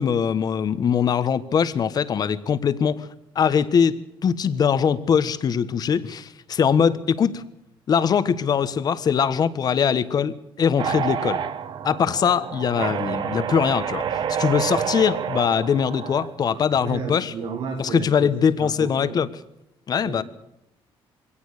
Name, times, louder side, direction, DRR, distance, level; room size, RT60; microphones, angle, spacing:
voice 1, 0.0-3.1 3.3-7.4 7.9-11.4 11.8-14.0 14.4-17.3 17.8-19.3 19.9-20.2, left 7 dB, 45° left, 14 dB, 1.3 m, -22 dB
sound 1, 10.8-16.3, right 8 dB, 55° right, 1.4 m, -28 dB
voice 2, 16.5-18.3 18.5-19.1 20.0-20.1, right 5 dB, 70° right, -2 dB, 5.7 m, -33 dB
23.0 x 17.5 x 6.6 m, 0.83 s
cardioid pair, 135°, 10 cm